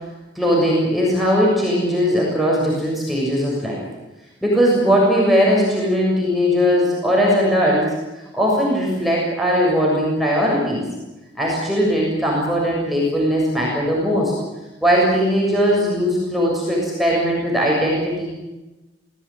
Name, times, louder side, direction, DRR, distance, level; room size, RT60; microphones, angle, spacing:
voice 1, 0.4-3.8 4.4-7.9 8.3-10.8 11.4-14.3 14.8-18.3, equal, ahead, -4 dB, 7.1 m, -19 dB
26.5 x 17.0 x 9.1 m, 1.0 s
head